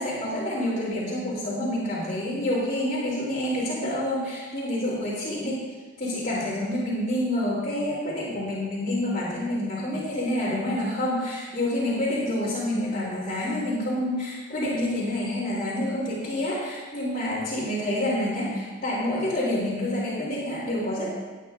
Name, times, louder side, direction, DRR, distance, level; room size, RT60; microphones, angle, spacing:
voice 1, 0.0-5.6 6.0-21.1, left 1 dB, 40° left, -9 dB, 2.7 m, -28 dB
18.0 x 9.1 x 2.3 m, 1.3 s
head